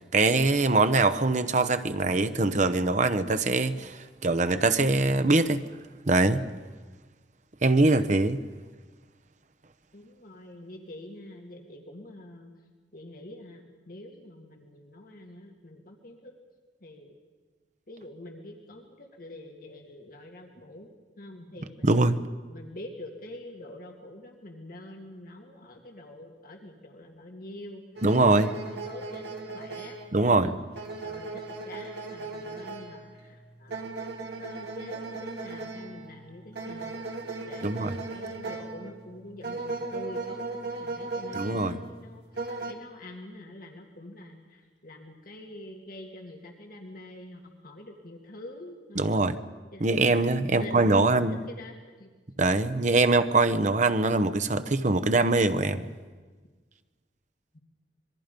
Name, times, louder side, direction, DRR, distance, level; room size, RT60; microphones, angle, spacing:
voice 1, 0.1-5.6 6.1-6.4 7.6-8.4 21.8-22.2 28.0-28.5 30.1-30.5 37.6-37.9 41.3-41.8 49.0-49.4 49.8-51.4 52.4-55.9, right 2 dB, 45° right, 10 dB, 0.9 m, -23 dB
voice 2, 9.9-12.5 12.9-16.3 16.8-17.2 17.9-20.9 21.2-22.2 22.5-30.0 30.2-30.7 31.0-33.9 34.4-40.4 40.8-49.3 49.7-52.1 57.5-57.6, left 1 dB, 55° left, 2 dB, 2.1 m, -46 dB
sound 1, 28.0-42.7, right 3 dB, 70° right, 2.4 m, -38 dB
26.5 x 21.5 x 5.3 m, 1.4 s
head